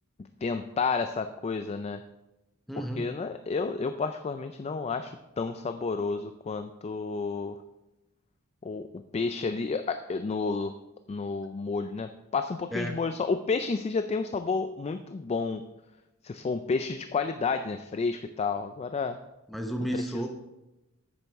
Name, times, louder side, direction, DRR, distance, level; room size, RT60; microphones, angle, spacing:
voice 1, 0.4-2.0 2.8-7.6 8.6-10.7 11.1-15.6 16.2-19.2 19.9-20.3, left 4 dB, 30° left, 9 dB, 0.3 m, -31 dB
voice 2, 2.7-3.1 12.7-13.0 19.5-20.3, right 1 dB, ahead, 3 dB, 0.8 m, -32 dB
10.5 x 8.4 x 3.5 m, 0.98 s
head